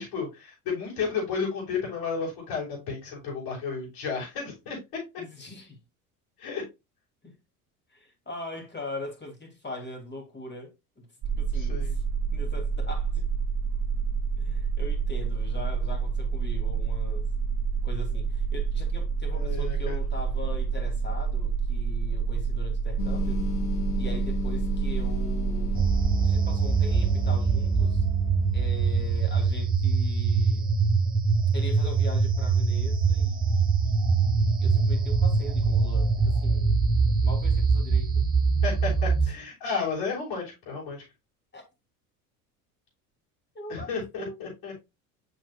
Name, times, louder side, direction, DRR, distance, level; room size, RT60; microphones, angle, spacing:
voice 1, 0.0-4.8 6.4-6.6 11.5-11.9 19.3-20.0 38.6-41.0 43.7-44.7, left 5 dB, 50° left, 5.1 m, -32 dB
voice 2, 5.2-5.8 7.2-7.3 7.9-11.1 11.4-12.0 12.3-13.2 14.4-17.3 17.8-23.5 23.9-25.9 26.2-28.1 28.5-30.7 31.5-36.8 37.2-38.2 39.2-39.3 41.5-41.6 43.6-44.4, left 2 dB, 25° left, 3.4 m, -41 dB
sound 1, 11.2-26.1, right 6 dB, 35° right, 2.9 m, -28 dB
sound 2, 23.0-29.4, left 5 dB, 85° left, 1.6 m, -36 dB
sound 3, 25.7-39.3, right 4 dB, 20° right, 1.8 m, -23 dB
7.7 x 6.5 x 2.5 m
hypercardioid pair, 75°, 45 cm